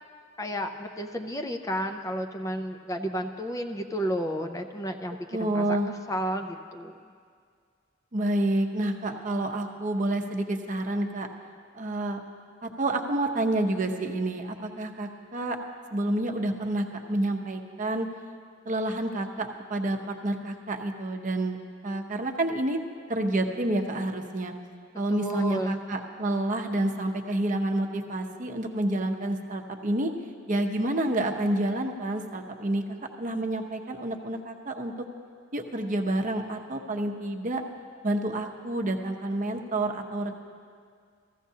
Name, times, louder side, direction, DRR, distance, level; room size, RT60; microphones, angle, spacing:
voice 1, 0.4-5.8 6.1-7.0 25.1-25.8, equal, 15° left, 5 dB, 0.4 m, -32 dB
voice 2, 5.3-5.9 8.1-11.3 11.7-12.2 12.6-15.6 15.9-18.1 18.7-21.6 21.8-22.8 23.1-24.5 25.0-30.1 30.5-32.8 33.2-35.1 35.5-37.6 38.0-40.3, right 1 dB, 40° right, 3 dB, 0.7 m, -29 dB
15.0 x 15.0 x 2.8 m, 2.1 s
head